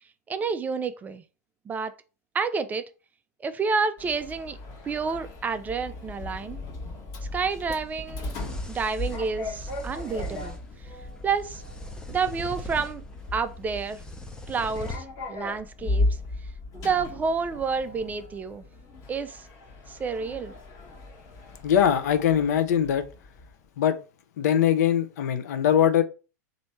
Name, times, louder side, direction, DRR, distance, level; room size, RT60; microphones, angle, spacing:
voice 1, 0.3-1.2 1.7-1.9 2.3-2.8 3.4-4.6 4.8-6.6 7.3-8.3 8.7-10.6 10.8-10.9 11.2-11.6 12.1-13.0 13.3-14.0 14.5-16.2 16.7-18.6 19.1-19.5 19.9-20.5, right 5 dB, 15° right, 0.3 m, -29 dB
Sliding door, 4.0-23.6, left 2 dB, 40° left, 1.1 m, -36 dB
sound 1, 7.5-15.0, equal, 10° left, 0.7 m, -41 dB
voice 2, 21.6-23.0 23.8-24.0 24.4-26.0, left 9 dB, 65° left, 0.6 m, -21 dB
3.2 x 2.6 x 4.3 m
hypercardioid pair, 110°, 9 cm